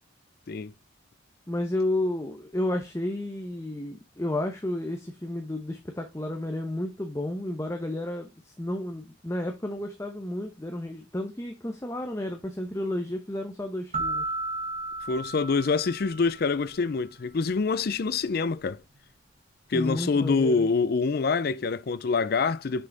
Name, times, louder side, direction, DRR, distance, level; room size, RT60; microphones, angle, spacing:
voice 1, 1.5-14.2 19.7-20.7, left 1 dB, 15° left, 0.8 m, -32 dB
sound 1, 13.9-16.7, right 2 dB, 35° right, 1.3 m, -33 dB
voice 2, 15.1-18.8 19.7-22.9, left 4 dB, 50° left, 0.4 m, -26 dB
6.3 x 5.5 x 3.9 m
head